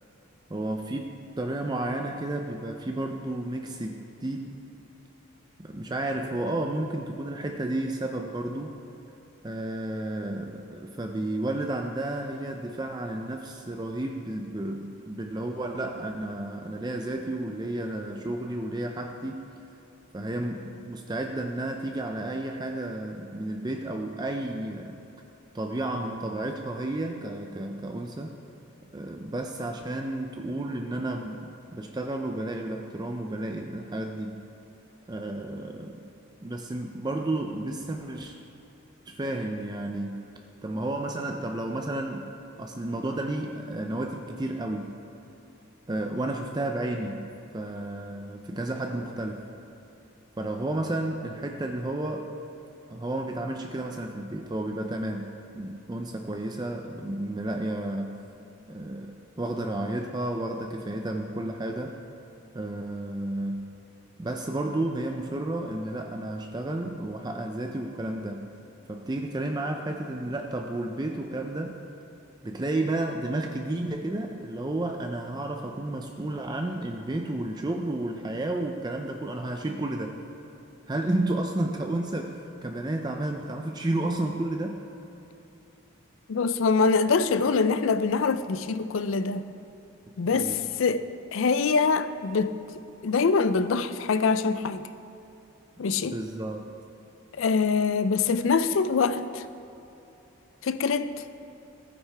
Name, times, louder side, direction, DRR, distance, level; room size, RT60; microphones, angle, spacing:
voice 1, 0.5-4.5 5.6-8.8 9.4-19.4 20.1-25.0 25.5-28.4 28.9-34.4 35.1-36.1 36.4-38.3 39.1-40.3 40.6-42.3 42.6-45.0 45.9-49.5 50.4-52.3 52.9-58.2 58.7-62.0 62.5-63.8 64.2-68.5 68.9-71.8 72.4-80.2 80.9-84.8 90.3-90.6 96.0-96.6, right 1 dB, 20° right, 3 dB, 0.4 m, -32 dB
voice 2, 86.3-89.5 90.2-91.0 91.3-92.6 93.0-94.8 95.8-96.2 97.4-99.4 100.6-101.1, left 4 dB, 70° left, 12 dB, 0.4 m, -24 dB
15.0 x 9.3 x 3.4 m, 2.9 s
head